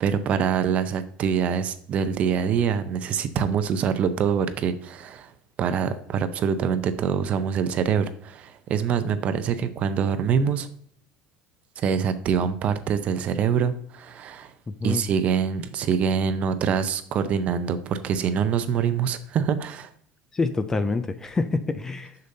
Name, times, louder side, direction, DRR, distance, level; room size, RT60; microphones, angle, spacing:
voice 1, 0.0-5.3 5.6-10.7 11.8-14.5 14.8-19.9, right 7 dB, 35° right, 11 dB, 0.6 m, -25 dB
voice 2, 20.3-22.2, left 3 dB, 15° left, 11 dB, 0.3 m, -26 dB
6.7 x 6.6 x 2.7 m, 0.62 s
cardioid pair, 165°, 4 cm